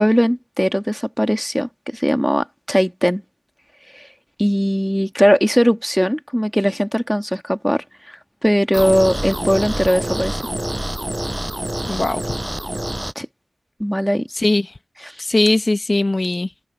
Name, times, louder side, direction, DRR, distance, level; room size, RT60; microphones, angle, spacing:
voice 1, 0.0-3.2 3.9-4.1 4.4-10.5 13.1-13.3 13.8-14.3 15.0-15.2, equal, ahead, 1.6 m, -19 dB
sound 1, 8.7-13.1, right 1 dB, 15° right, 6.9 m, -26 dB
voice 2, 11.9-12.2 14.3-14.7 15.2-16.5, left 2 dB, 40° left, 0.9 m, -19 dB
open air
wide cardioid pair, 50°, 0 cm